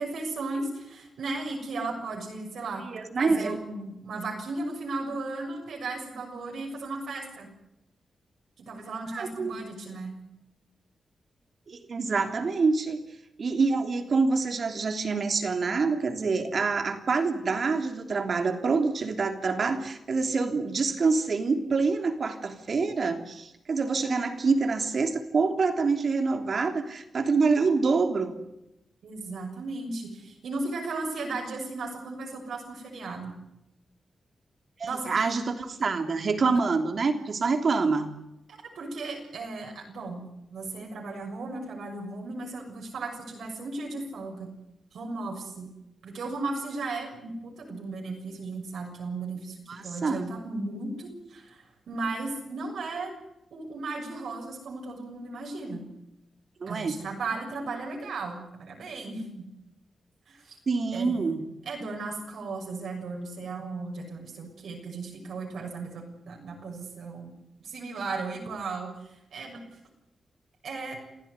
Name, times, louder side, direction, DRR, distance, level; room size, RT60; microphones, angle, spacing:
voice 1, 0.0-2.8 3.2-7.5 8.6-10.1 29.0-33.4 34.8-35.1 38.5-40.3 40.5-44.5 44.9-45.7 46.0-53.1 53.5-55.9 56.7-59.5 60.3-60.6 60.9-67.4 67.6-69.6 70.6-71.0, right 3 dB, 80° right, 1 dB, 6.7 m, -36 dB
voice 2, 2.8-3.6 9.1-9.5 11.7-13.0 13.4-28.4 34.8-38.2 49.7-50.3 56.6-57.0 60.7-61.5, right 4 dB, 55° right, 6 dB, 3.2 m, -26 dB
28.5 x 15.5 x 9.8 m, 0.88 s
cardioid pair, 85°, 0 cm